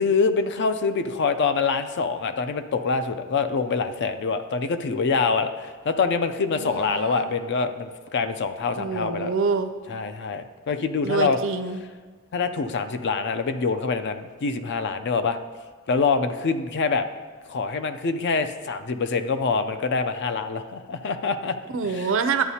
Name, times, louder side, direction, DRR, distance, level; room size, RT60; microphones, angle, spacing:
voice 1, 0.0-9.3 9.9-11.4 12.3-15.4 15.9-17.0 17.5-21.6 21.8-22.1, left 4 dB, 55° left, 9 dB, 0.4 m, -25 dB
voice 2, 6.5-7.3 8.8-9.7 11.0-11.8 21.7-22.4, right 5 dB, 60° right, 8 dB, 0.5 m, -26 dB
11.0 x 8.0 x 2.8 m, 1.5 s
head